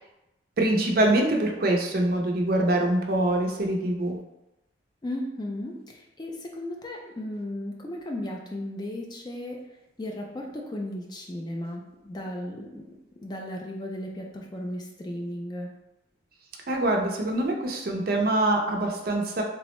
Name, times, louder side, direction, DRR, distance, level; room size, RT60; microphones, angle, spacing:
voice 1, 0.6-4.2 16.7-19.4, right 1 dB, 50° right, 2 dB, 0.4 m, -24 dB
voice 2, 5.0-9.6 10.0-12.8 13.2-15.7, left 1 dB, 20° left, 0 dB, 0.3 m, -35 dB
3.4 x 2.0 x 3.0 m, 0.93 s
head